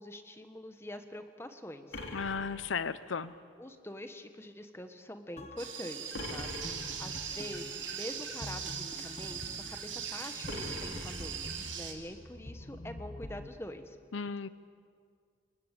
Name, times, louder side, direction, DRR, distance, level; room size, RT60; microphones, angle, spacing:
voice 1, 0.0-2.0 3.6-14.0, left 1 dB, 15° left, 8 dB, 1.3 m, -45 dB
sound 1, 1.9-3.3 6.1-7.3 10.5-11.8, left 2 dB, 65° left, 3.4 m, -43 dB
voice 2, 2.1-3.3 14.1-14.5, left 5 dB, 85° left, 15 dB, 0.7 m, -35 dB
sound 2, 5.4-13.5, left 1 dB, 30° left, 1.0 m, -47 dB
sound 3, 5.6-11.9, right 8 dB, 75° right, 3.3 m, -40 dB
27.0 x 22.5 x 8.3 m, 2.1 s
head